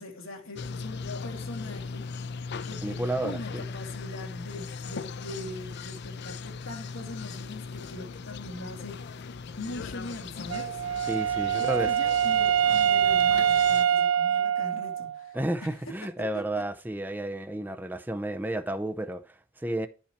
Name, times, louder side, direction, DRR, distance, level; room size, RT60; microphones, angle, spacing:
voice 1, 0.0-2.1 2.4-10.8 11.5-15.4 16.3-16.4, left 2 dB, 70° left, 2.0 m, -42 dB
sound 1, 0.6-13.9, left 4 dB, 55° left, 0.4 m, -39 dB
voice 2, 2.8-3.6 11.1-12.0 15.3-19.9, right 1 dB, 10° right, 0.5 m, -32 dB
Wind instrument woodwind instrument, 10.5-15.3, right 9 dB, 75° right, 0.4 m, -24 dB
10.0 x 5.6 x 4.4 m
head